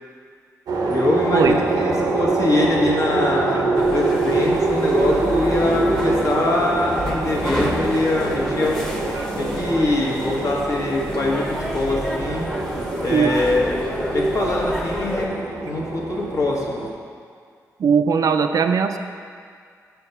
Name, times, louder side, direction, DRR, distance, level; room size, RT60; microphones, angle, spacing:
sound 1, 0.7-16.9, right 3 dB, 85° right, 0.7 m, -25 dB
voice 1, 0.9-8.8 9.3-12.5 13.0-13.8 14.1-15.3 15.6-16.8, left 2 dB, 55° left, -3 dB, 1.2 m, -23 dB
sound 2, 3.8-15.3, equal, 5° left, 0.9 m, -29 dB
voice 2, 17.8-19.0, right 6 dB, 65° right, 7 dB, 0.3 m, -19 dB
4.7 x 4.6 x 5.5 m, 2.1 s
cardioid pair, 65°, 7 cm